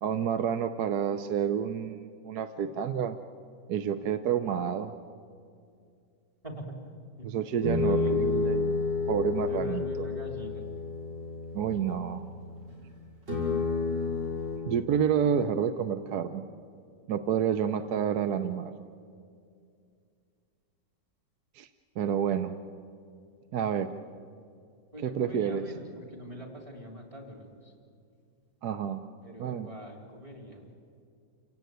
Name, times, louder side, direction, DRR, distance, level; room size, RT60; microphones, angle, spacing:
voice 1, 0.0-3.2 3.7-4.9 7.2-8.8 9.1-10.1 11.5-12.2 14.7-16.4 17.1-18.7 21.5-21.7 22.0-22.5 23.5-23.9 25.0-25.7 28.6-29.0 29.4-29.7, right 8 dB, 65° right, 10 dB, 1.2 m, -29 dB
voice 2, 6.4-6.9 7.2-7.3 7.7-8.4 9.5-10.7 24.9-27.5 29.2-30.7, equal, 20° right, 1 dB, 3.5 m, -43 dB
sound 1, 7.6-12.8 13.3-14.6, left 4 dB, 85° right, 5.9 m, -30 dB
29.0 x 17.0 x 9.3 m, 2.3 s
omnidirectional pair, 1.9 m